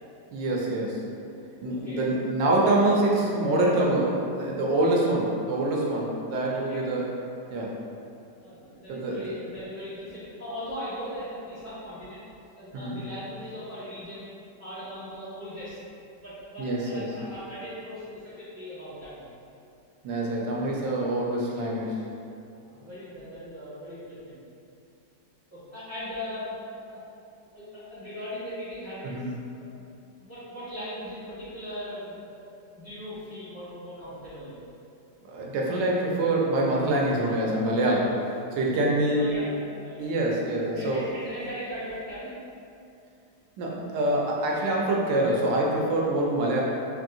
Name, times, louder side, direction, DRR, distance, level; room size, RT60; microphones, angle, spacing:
voice 1, 0.3-1.0 1.6-7.1 7.5-7.7 8.9-9.2 12.7-13.0 16.6-17.1 20.0-22.0 29.0-29.3 35.3-38.2 38.5-39.3 40.0-41.1 43.6-46.6, right 1 dB, 85° right, -3 dB, 1.3 m, -25 dB
voice 2, 1.7-2.1 6.5-6.8 8.4-12.2 12.6-14.3 14.6-15.8 16.2-19.3 22.7-24.4 25.5-26.5 26.8-27.0 27.5-29.3 29.6-29.8 30.2-32.4 32.7-34.6 39.2-39.5 39.8-40.2 40.4-42.4, equal, 10° right, -14 dB, 1.2 m, -39 dB
4.5 x 3.0 x 2.6 m, 2.6 s
omnidirectional pair, 1.9 m